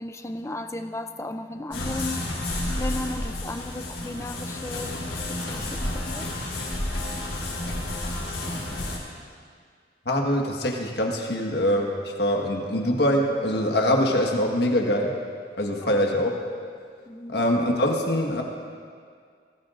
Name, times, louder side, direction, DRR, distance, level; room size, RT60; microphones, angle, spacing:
voice 1, 0.0-2.4 2.8-6.3 15.8-16.0 17.1-17.4, left 2 dB, 15° left, 7 dB, 0.4 m, -35 dB
sound 1, 1.7-9.0, left 1 dB, 90° left, 4.1 m, -31 dB
voice 2, 10.0-15.2 15.6-16.3 17.3-18.4, left 1 dB, 65° left, 1 dB, 1.5 m, -23 dB
20.0 x 16.5 x 2.6 m, 2.1 s
head